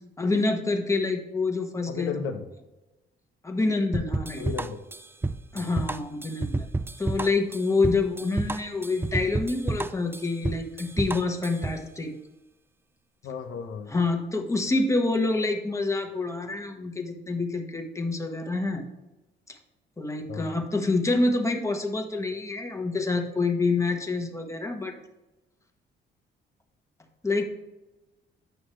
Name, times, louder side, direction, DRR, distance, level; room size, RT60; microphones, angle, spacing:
voice 1, 0.2-2.3 3.4-4.4 5.5-6.7 7.0-12.1 13.9-18.8 19.5-19.6 20.0-24.9 27.2-27.4, left 3 dB, 15° left, 4 dB, 1.2 m, -27 dB
voice 2, 1.9-2.4 4.4-4.8 5.5-5.7 13.2-13.9 20.3-20.5, left 6 dB, 85° left, 7 dB, 1.0 m, -34 dB
sound 1, 3.9-11.8, right 2 dB, 10° right, 0.4 m, -30 dB
9.1 x 6.3 x 3.1 m, 1.0 s
cardioid pair, 90°, 20 cm